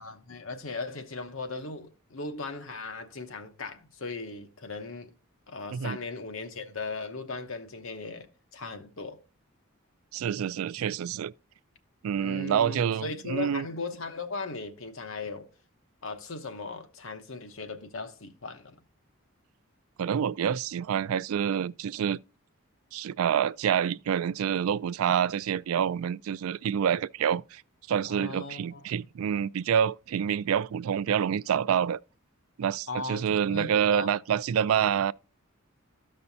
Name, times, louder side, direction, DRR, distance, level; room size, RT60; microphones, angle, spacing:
voice 1, 0.0-5.1 5.5-9.2 12.2-15.5 16.0-18.8 28.1-28.9 32.9-34.1 34.9-35.0, left 3 dB, 70° left, 1.0 m, -38 dB
voice 2, 10.1-11.3 12.0-13.7 20.0-22.2 22.9-27.6 27.9-32.0 32.6-35.1, right 8 dB, 80° right, 0.3 m, -27 dB
13.0 x 5.5 x 2.7 m
head